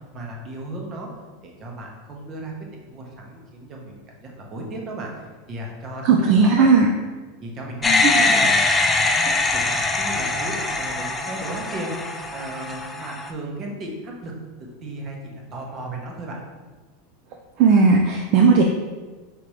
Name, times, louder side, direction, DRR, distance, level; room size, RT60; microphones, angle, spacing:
voice 1, 0.1-1.1 1.4-6.1 6.4-6.7 7.4-8.6 9.0-14.3 14.8-16.4, right 1 dB, 35° right, 0 dB, 0.9 m, -35 dB
voice 2, 6.0-6.9 8.0-8.2 17.6-18.6, right 4 dB, 50° right, 2 dB, 0.4 m, -16 dB
sound 1, 7.8-13.3, left 3 dB, 15° left, 0.4 m, -22 dB
5.1 x 2.9 x 3.1 m, 1.3 s
supercardioid pair, 125°, 0 cm